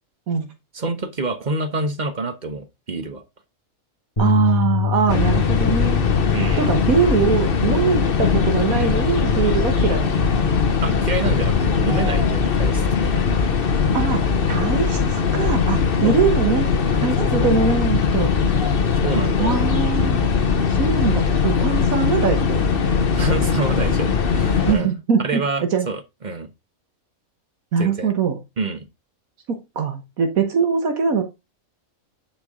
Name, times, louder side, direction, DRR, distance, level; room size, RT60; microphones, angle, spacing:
voice 1, 0.7-3.2 6.3-6.7 10.8-13.2 16.0-16.2 17.2-17.5 19.0-19.7 23.2-24.9 25.2-26.5 27.8-28.1 28.6-28.9, right 3 dB, 35° right, 1.1 m, -27 dB
sound 1, 4.2-10.4, left 7 dB, 25° left, 1.9 m, -27 dB
voice 2, 4.2-6.0 6.6-10.2 13.9-16.7 17.0-18.3 19.4-20.2 20.7-22.7 24.7-25.4 25.7-25.9 27.7-28.4 29.5-31.2, right 6 dB, 75° right, 1.6 m, -22 dB
sound 2, 5.1-24.7, left 6 dB, 45° left, 1.1 m, -20 dB
10.5 x 4.7 x 3.6 m
omnidirectional pair, 1.5 m